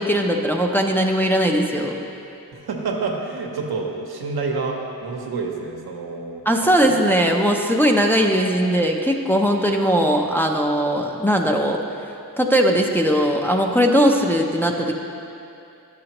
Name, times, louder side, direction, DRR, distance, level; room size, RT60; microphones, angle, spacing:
voice 1, 0.0-2.0 6.5-11.8 12.4-14.9, equal, 5° left, 1 dB, 0.5 m, -19 dB
voice 2, 2.5-6.9, right 4 dB, 80° right, 0 dB, 0.9 m, -28 dB
10.0 x 6.5 x 2.9 m, 2.7 s
cardioid pair, 70°, 37 cm